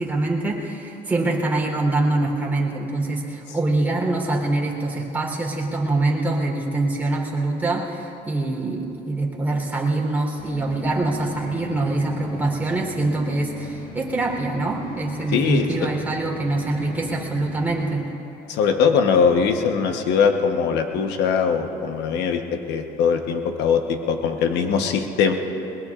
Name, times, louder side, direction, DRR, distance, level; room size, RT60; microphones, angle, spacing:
voice 1, 0.0-18.0, right 2 dB, 10° right, -3 dB, 3.6 m, -24 dB
sound 1, 10.4-17.9, equal, 55° left, 3.7 m, -38 dB
voice 2, 15.3-15.7 18.5-22.4 22.7-25.3, left 6 dB, 85° left, 5 dB, 1.1 m, -21 dB
22.0 x 21.0 x 2.5 m, 2.9 s
cardioid pair, 110°, 17 cm